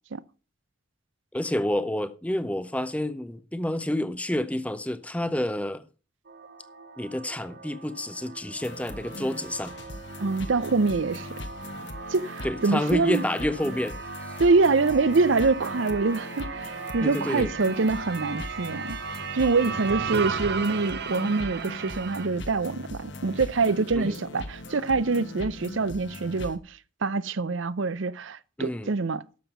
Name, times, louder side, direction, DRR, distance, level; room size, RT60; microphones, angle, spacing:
voice 1, 1.3-5.9 7.0-9.7 12.4-14.0 17.0-17.5 23.9-24.1 28.6-28.9, left 1 dB, 5° left, 0.6 m, -29 dB
sound 1, 6.3-22.3, right 5 dB, 50° right, 0.9 m, -37 dB
sound 2, 8.6-26.6, left 1 dB, 60° left, 1.4 m, -40 dB
voice 2, 10.2-11.3 12.1-13.2 14.4-19.0 19.3-29.2, right 4 dB, 70° right, 0.6 m, -25 dB
11.5 x 7.3 x 5.6 m
head